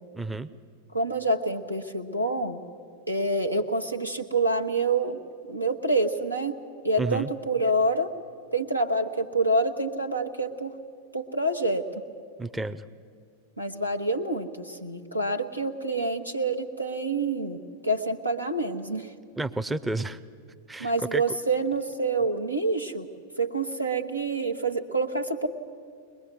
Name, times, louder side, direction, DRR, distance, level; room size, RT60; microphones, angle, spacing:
voice 1, 0.1-0.5 7.0-7.3 12.4-12.8 19.3-20.2 20.7-21.4, right 2 dB, 10° right, 11 dB, 0.6 m, -31 dB
voice 2, 0.9-2.6 3.1-5.2 5.5-6.6 6.8-8.1 8.5-10.7 11.1-11.9 13.6-19.1 20.8-23.1 23.4-25.5, right 2 dB, 85° right, 5 dB, 1.2 m, -27 dB
22.0 x 21.0 x 7.6 m, 2.2 s
figure-of-eight pair, 90°, 0 cm